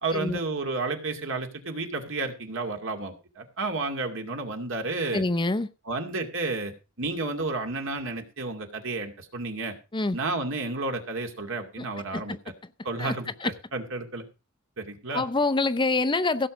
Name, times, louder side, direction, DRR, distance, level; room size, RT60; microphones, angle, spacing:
voice 1, 0.0-5.2 5.9-6.7 7.0-9.7 10.1-12.3 12.8-14.2 14.8-15.2, right 3 dB, 65° right, 2.5 m, -31 dB
voice 2, 5.1-5.7 9.9-10.2 11.8-11.9 12.1-12.4 13.0-13.1 13.4-13.5 15.1-16.5, left 3 dB, 20° left, 0.6 m, -26 dB
16.5 x 7.1 x 5.1 m
head